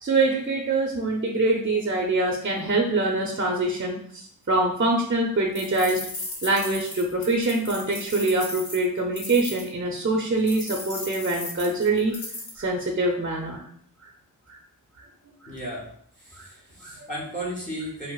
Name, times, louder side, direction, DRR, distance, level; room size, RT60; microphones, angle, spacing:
voice 1, 0.0-6.0 6.4-12.2 12.6-13.6 15.4-15.5 16.4-16.5 16.8-17.1, right 2 dB, 30° right, 0 dB, 0.6 m, -24 dB
sound 1, 5.5-9.7 10.5-12.6, left 2 dB, 70° left, 1.2 m, -36 dB
voice 2, 15.5-15.9 16.2-18.1, right 1 dB, 20° left, -4 dB, 1.0 m, -35 dB
4.5 x 2.0 x 2.3 m, 0.63 s
cardioid pair, 50°, 39 cm